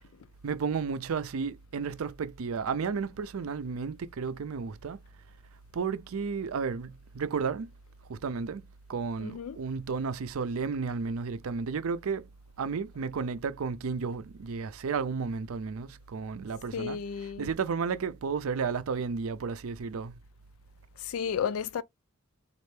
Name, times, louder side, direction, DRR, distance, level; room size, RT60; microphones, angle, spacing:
voice 1, 0.4-5.0 5.7-7.7 8.1-8.6 8.9-12.3 12.6-17.0 17.4-20.1, right 5 dB, 85° right, 0.5 m, -32 dB
voice 2, 9.2-9.6 16.7-17.5 21.0-21.8, left 7 dB, 80° left, 0.4 m, -33 dB
4.3 x 2.5 x 3.2 m
head